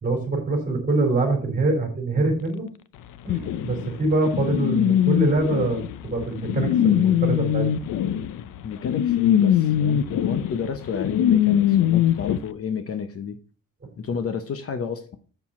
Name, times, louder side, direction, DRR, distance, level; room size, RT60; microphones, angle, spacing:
voice 1, 0.0-2.7 3.2-7.7, right 2 dB, 25° right, 3.7 m, -24 dB
sound 1, 3.3-12.4, left 10 dB, 80° left, 0.7 m, -22 dB
voice 2, 8.6-13.4 14.0-15.2, left 6 dB, 45° left, 0.8 m, -31 dB
7.8 x 7.2 x 4.2 m
cardioid pair, 145°, 33 cm